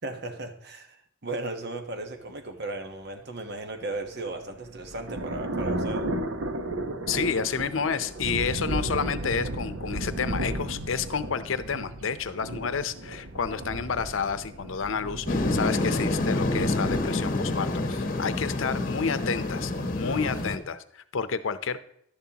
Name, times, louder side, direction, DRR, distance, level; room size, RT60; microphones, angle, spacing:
voice 1, 0.0-6.1, right 2 dB, 55° right, 6 dB, 1.2 m, -36 dB
sound 1, 4.1-17.2, right 1 dB, 75° right, 1.0 m, -34 dB
voice 2, 7.1-21.8, left 6 dB, 75° left, 13 dB, 0.7 m, -30 dB
sound 2, 15.3-20.6, left 2 dB, 45° left, 1.1 m, -28 dB
11.5 x 11.0 x 2.9 m, 0.72 s
head